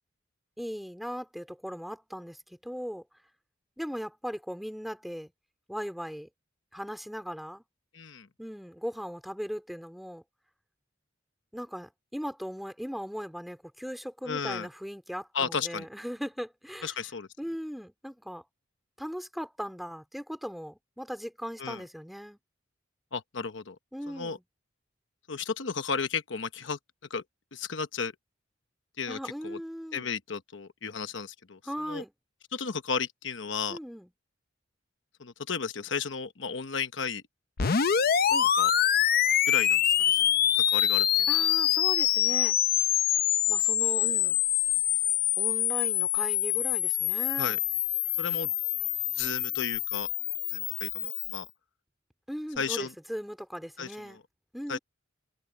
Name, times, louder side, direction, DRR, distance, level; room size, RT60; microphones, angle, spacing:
voice 1, 0.6-2.4 2.6-3.0 3.8-5.3 5.7-6.3 6.7-7.6 8.4-10.2 11.5-17.0 17.4-18.4 19.0-22.4 23.9-24.4 29.1-30.1 31.6-32.1 33.7-34.1 38.3-38.5 41.3-42.6 43.5-44.4 45.4-47.6 52.3-54.2 54.5-54.8, equal, ahead, 2.9 m, -38 dB
voice 2, 7.9-8.3 14.3-14.7 15.3-15.9 16.8-17.3 21.6-21.8 23.1-23.8 24.1-24.4 25.3-26.8 27.1-27.2 27.5-28.1 29.0-29.2 29.4-29.6 29.9-31.6 31.9-32.0 32.5-33.8 35.2-37.2 38.6-38.7 39.5-40.3 40.6-41.3 47.4-47.6 48.2-48.5 49.1-50.1 50.5-51.5 52.6-52.9 53.8-54.2 54.7-54.8, left 5 dB, 70° left, 1.0 m, -34 dB
sound 1, 37.6-51.4, left 10 dB, 50° left, 0.7 m, -25 dB
head